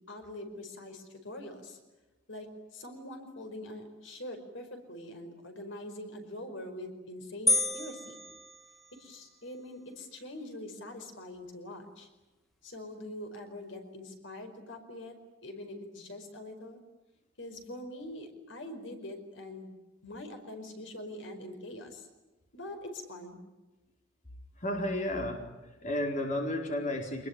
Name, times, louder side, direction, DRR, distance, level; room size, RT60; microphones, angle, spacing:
voice 1, 0.0-1.8 2.3-8.2 8.9-12.1 12.6-15.2 15.4-16.8 17.4-19.7 20.0-22.1 22.5-23.4, left 1 dB, 75° left, 6 dB, 5.0 m, -44 dB
sound 1, 7.5-9.2, left 2 dB, ahead, 1.7 m, -31 dB
voice 2, 24.6-25.4 25.8-27.3, left 1 dB, 40° left, 2 dB, 4.4 m, -32 dB
26.5 x 21.0 x 9.8 m, 1.1 s
head